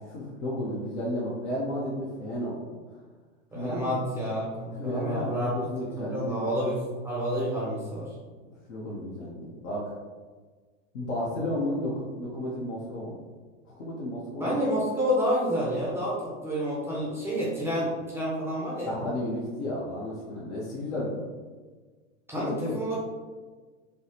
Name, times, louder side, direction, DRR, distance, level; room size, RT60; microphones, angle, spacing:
voice 1, 0.1-2.5 3.5-3.9 4.8-6.5 8.7-9.9 10.9-13.2 13.7-14.6 18.9-21.3 22.3-22.8, left 1 dB, 70° left, -6 dB, 0.8 m, -33 dB
voice 2, 3.5-5.6 5.8-8.1 14.4-19.0 22.3-23.0, equal, 5° right, -7 dB, 0.4 m, -29 dB
3.4 x 2.0 x 2.7 m, 1.4 s
hypercardioid pair, 115°, 38 cm